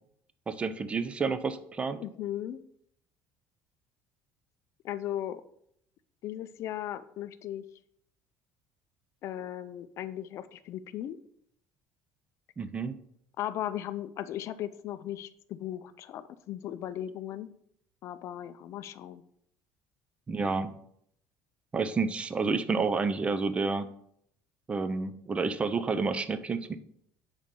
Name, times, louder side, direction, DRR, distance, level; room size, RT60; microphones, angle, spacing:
voice 1, 0.5-2.0 12.6-12.9 20.3-20.7 21.7-23.9 24.7-26.8, right 4 dB, 20° right, 11 dB, 0.4 m, -29 dB
voice 2, 2.0-2.6 4.8-5.4 6.2-7.6 9.2-11.2 13.4-17.5 18.0-19.2, left 11 dB, 50° left, 13 dB, 0.4 m, -37 dB
7.0 x 4.9 x 3.7 m, 0.70 s
cardioid pair, 150°, 6 cm